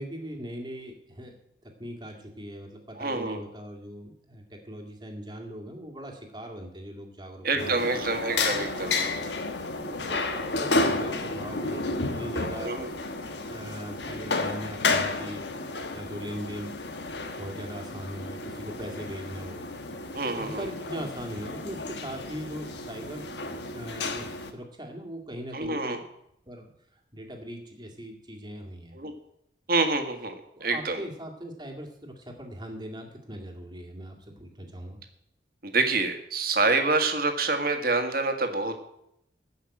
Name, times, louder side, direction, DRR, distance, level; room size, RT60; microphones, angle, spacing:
voice 1, 0.0-1.3 1.6-7.8 9.8-11.9 12.1-12.8 13.5-15.4 15.9-16.7 17.4-19.6 20.4-23.3 23.7-26.0 26.5-26.7 27.1-29.0 30.5-35.0, equal, 25° right, 2 dB, 2.1 m, -40 dB
voice 2, 3.0-3.4 7.4-9.1 12.6-12.9 20.1-20.7 25.5-26.0 28.9-29.1 29.7-30.3 30.6-31.0 35.6-38.8, right 3 dB, 55° right, 6 dB, 1.7 m, -27 dB
sound 1, 7.6-24.5, left 3 dB, 75° left, 1.3 m, -32 dB
14.0 x 5.8 x 8.7 m, 0.77 s
head